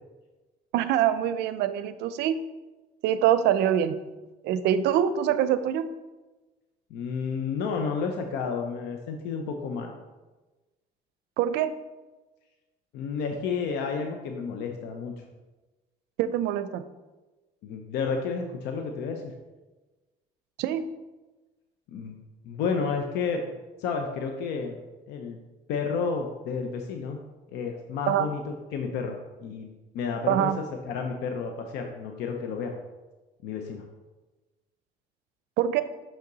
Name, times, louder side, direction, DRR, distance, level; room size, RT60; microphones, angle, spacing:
voice 1, 0.7-2.4 3.0-4.0 4.4-5.9 11.4-11.7 16.2-16.8 20.6-20.9 28.1-28.3 30.3-30.6 35.6-35.8, right 10 dB, 85° right, 13 dB, 0.5 m, -24 dB
voice 2, 6.9-9.9 12.9-15.1 17.6-19.3 21.9-22.2 22.4-23.4 23.8-24.8 25.1-25.4 25.7-27.2 27.5-28.4 28.7-30.5 30.8-32.8 33.4-33.9, left 5 dB, 85° left, 3 dB, 0.7 m, -31 dB
5.8 x 5.5 x 3.9 m, 1.2 s
cardioid pair, 110°, 17 cm